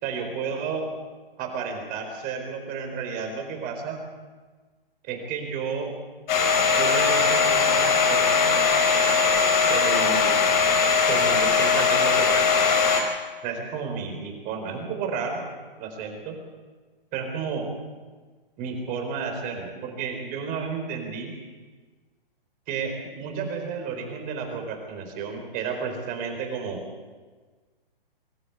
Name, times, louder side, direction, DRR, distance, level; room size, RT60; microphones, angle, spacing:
voice 1, 0.0-0.9 1.4-4.0 5.1-5.9 6.8-8.5 9.7-10.5 11.1-12.7 13.4-15.4 15.8-16.4 17.1-17.7 18.6-21.3 22.7-26.8, right 5 dB, 30° right, 4 dB, 4.5 m, -31 dB
Domestic sounds home sounds, 6.3-13.0, left 5 dB, 50° left, 5.1 m, -20 dB
24.5 x 13.5 x 8.2 m, 1.4 s
hypercardioid pair, 130°, 29 cm